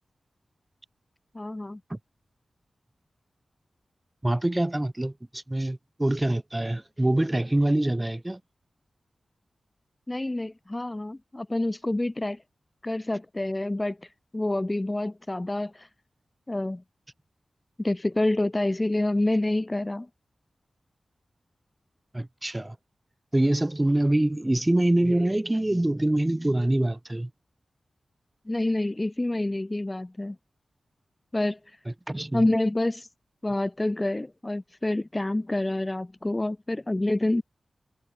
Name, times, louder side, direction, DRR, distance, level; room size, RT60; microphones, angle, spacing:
voice 1, 1.3-1.8 10.1-12.4 12.8-14.0 14.3-15.9 16.5-16.8 17.8-20.1 28.4-30.4 31.3-31.6 32.3-33.1 33.4-37.4, left 1 dB, 25° left, 3.2 m, -27 dB
voice 2, 4.2-8.4 22.1-22.8 23.3-27.3 32.1-32.5, right 1 dB, 20° right, 5.1 m, -25 dB
cardioid pair, 45°, 0 cm